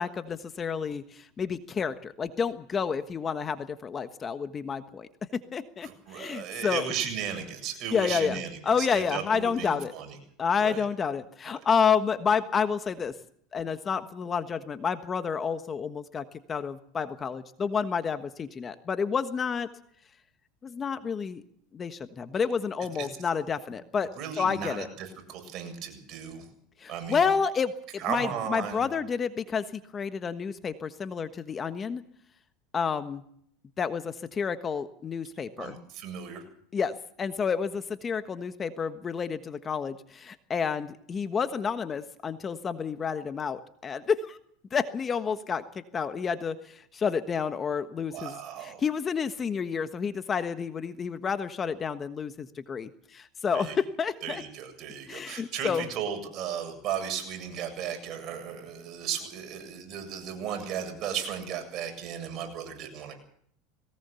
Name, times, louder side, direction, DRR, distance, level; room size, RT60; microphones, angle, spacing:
voice 1, 0.0-6.9 7.9-9.9 10.4-13.1 13.5-19.7 20.6-21.4 21.7-24.1 24.4-24.9 26.8-32.0 32.7-33.2 33.8-35.8 36.7-44.4 44.7-54.4 55.1-55.9, left 6 dB, 25° left, 10 dB, 1.3 m, -30 dB
voice 2, 5.8-10.2 10.6-10.8 23.0-23.1 24.2-26.5 26.9-27.3 28.0-28.8 35.6-36.4 48.1-48.8 53.5-53.7 54.2-63.1, right 8 dB, 50° right, 6 dB, 7.7 m, -35 dB
21.0 x 18.5 x 7.0 m, 0.65 s
supercardioid pair, 110°, 0 cm